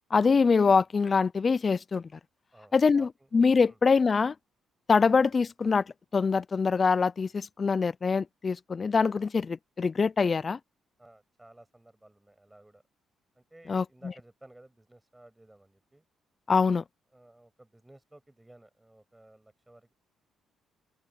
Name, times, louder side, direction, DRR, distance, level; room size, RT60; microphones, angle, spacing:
voice 1, 0.1-2.1 2.7-4.3 4.9-5.8 6.1-10.6 13.7-13.8 16.5-16.8, left 5 dB, 35° left, 0.4 m, -24 dB
voice 2, 2.5-3.3 3.6-3.8 11.0-12.8 13.4-16.0 17.1-19.9, right 1 dB, 10° right, 6.3 m, -56 dB
open air
cardioid pair, 90°, 0 cm